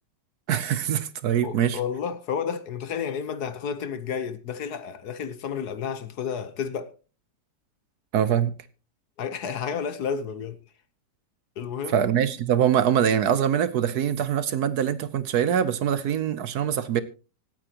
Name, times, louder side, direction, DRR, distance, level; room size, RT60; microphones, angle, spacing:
voice 1, 0.5-1.8 8.1-8.5 11.9-17.0, right 9 dB, 65° right, 1.2 m, -23 dB
voice 2, 1.4-6.9 9.2-10.6 11.6-12.0, left 7 dB, 65° left, 1.5 m, -31 dB
25.5 x 8.9 x 2.9 m
omnidirectional pair, 1.9 m